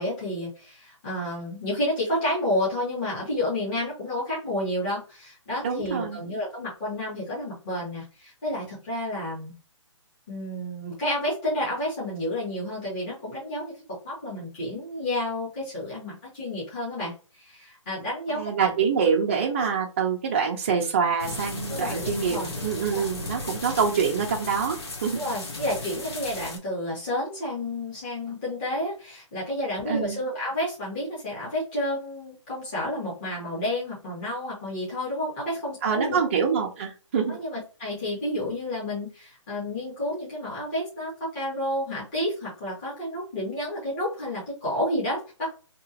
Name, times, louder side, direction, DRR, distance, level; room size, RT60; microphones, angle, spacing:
voice 1, 0.0-9.5 10.3-17.1 17.4-18.7 21.7-22.5 22.9-23.1 25.1-36.2 37.3-45.5, left 1 dB, 20° left, -8 dB, 1.5 m, -30 dB
voice 2, 5.6-6.2 18.3-25.2 29.9-30.2 35.8-37.4, right 6 dB, 25° right, 0 dB, 0.5 m, -25 dB
sound 1, 21.2-26.6, left 2 dB, 50° left, 1.1 m, -35 dB
2.9 x 2.9 x 2.7 m, 0.35 s
hypercardioid pair, 170°, 16 cm